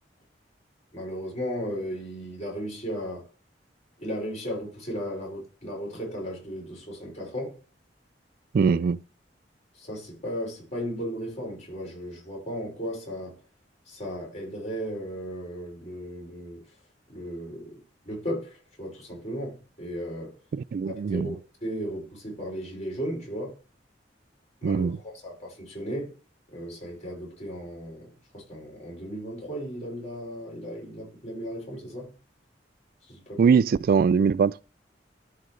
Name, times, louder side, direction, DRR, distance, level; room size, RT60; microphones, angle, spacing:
voice 1, 0.9-3.3 4.0-7.6 8.6-8.8 9.7-13.4 13.9-16.6 17.1-20.4 21.0-23.6 24.6-26.2 26.5-32.1 33.0-33.6, equal, 40° left, 5.5 m, -35 dB
voice 2, 8.5-9.0 20.5-21.3 24.6-25.0 33.4-34.6, right 6 dB, 55° right, 0.3 m, -22 dB
13.0 x 5.3 x 3.2 m
head